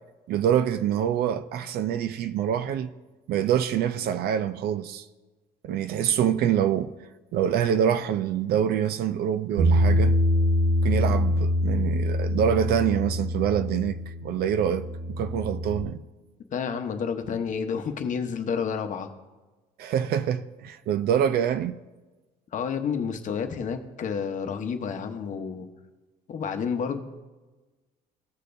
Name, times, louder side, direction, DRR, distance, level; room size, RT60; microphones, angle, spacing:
voice 1, 0.3-2.9 3.3-5.1 5.6-7.0 7.3-10.2 10.8-16.0 19.8-21.8, right 9 dB, 65° right, 0.5 m, -25 dB
Bass guitar, 9.6-15.8, left 1 dB, 80° right, 1.3 m, -24 dB
voice 2, 16.5-19.1 22.5-25.7 26.3-27.0, left 6 dB, 50° left, 1.0 m, -30 dB
16.5 x 6.6 x 2.6 m
cardioid pair, 110°, 17 cm